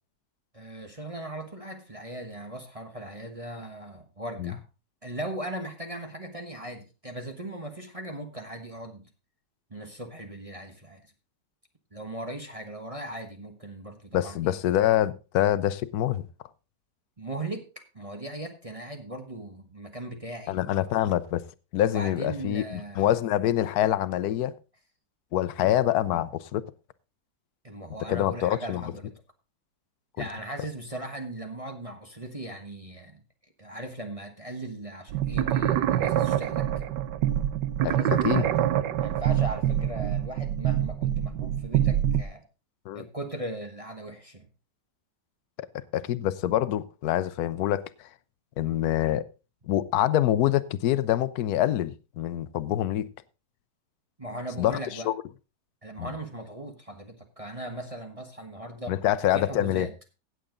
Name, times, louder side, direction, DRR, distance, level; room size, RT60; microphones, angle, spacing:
voice 1, 0.5-4.6 5.0-9.1 9.7-11.0 11.9-14.6 17.2-20.9 21.9-23.1 27.6-29.2 30.2-33.2 33.6-36.7 37.9-38.6 39.0-42.4 42.9-44.5 54.2-55.1 55.8-59.0 59.3-59.9, right 1 dB, 20° right, 1.2 m, -38 dB
voice 2, 14.1-16.2 20.5-21.4 21.7-24.6 25.3-26.7 28.1-28.8 30.2-30.3 37.8-38.0 38.2-38.5 42.9-43.0 45.9-47.8 48.6-49.2 49.7-53.1 54.6-54.8 55.1-55.2 56.0-56.1 58.9-59.9, left 12 dB, 70° left, 1.2 m, -25 dB
sound 1, 35.1-42.2, right 11 dB, 85° right, 1.3 m, -25 dB
16.0 x 7.8 x 3.8 m
omnidirectional pair, 1.8 m